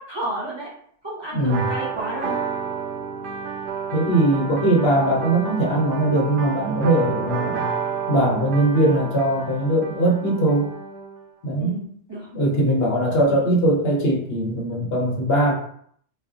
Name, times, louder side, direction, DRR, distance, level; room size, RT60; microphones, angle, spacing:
voice 1, 0.1-0.7 1.0-2.3 11.6-12.3 13.1-13.5, right 1 dB, 25° right, -7 dB, 1.0 m, -32 dB
voice 2, 1.3-1.7 3.9-7.7 8.1-10.7 11.4-11.7 12.3-15.5, right 1 dB, 70° left, -3 dB, 1.2 m, -20 dB
sound 1, 1.4-11.0, right 6 dB, 60° right, 0.6 m, -31 dB
Wind instrument woodwind instrument, 3.2-11.3, right 2 dB, 5° left, 0.7 m, -40 dB
4.0 x 2.4 x 2.5 m, 0.63 s
omnidirectional pair, 1.1 m